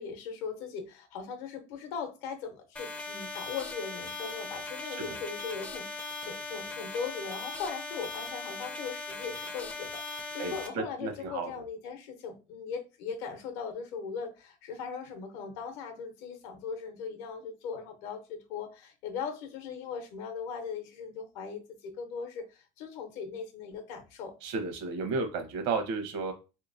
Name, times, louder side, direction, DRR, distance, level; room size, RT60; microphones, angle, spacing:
voice 1, 0.0-24.3, left 6 dB, 70° left, 0.7 m, -39 dB
sound 1, 2.8-10.7, left 3 dB, 10° left, 0.4 m, -39 dB
voice 2, 10.4-11.5 24.4-26.3, right 4 dB, 70° right, 0.9 m, -33 dB
3.3 x 2.8 x 2.5 m
cardioid pair, 170°, 12 cm